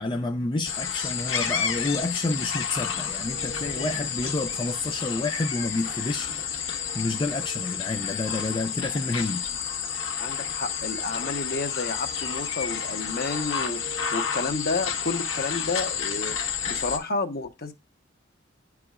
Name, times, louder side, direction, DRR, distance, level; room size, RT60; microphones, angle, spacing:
voice 1, 0.0-6.3 6.9-9.4, left 2 dB, 25° left, 0.5 m, -29 dB
sound 1, 0.6-17.0, left 7 dB, 85° left, 1.7 m, -30 dB
voice 2, 10.2-13.8 14.1-16.4 16.7-17.7, left 3 dB, 50° left, 1.2 m, -30 dB
10.5 x 4.9 x 2.5 m
head